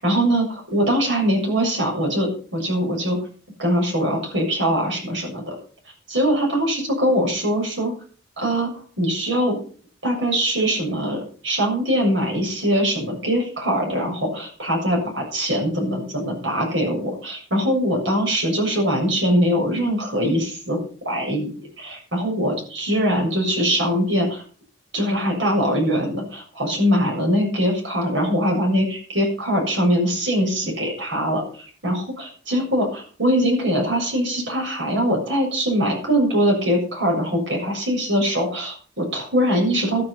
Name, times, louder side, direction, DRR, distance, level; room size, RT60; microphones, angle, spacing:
voice 1, 0.0-0.5 0.7-3.2 3.6-5.6 6.1-7.9 8.4-8.7 9.0-9.6 10.0-20.8 21.0-24.4 24.9-40.0, equal, 85° right, -1 dB, 7.3 m, -22 dB
13.0 x 11.0 x 5.8 m, 0.42 s
head